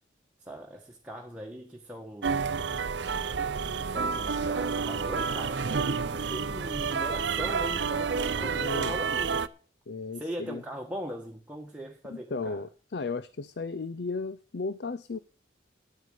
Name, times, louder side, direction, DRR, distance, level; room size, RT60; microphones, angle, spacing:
voice 1, 0.4-2.5 3.7-9.5 10.1-12.6, equal, 5° right, 1.3 m, -40 dB
sound 1, 2.2-9.5, right 5 dB, 70° right, 0.6 m, -29 dB
voice 2, 8.4-8.9 9.9-10.6 12.1-15.2, left 3 dB, 65° left, 0.5 m, -35 dB
9.8 x 9.2 x 6.5 m
head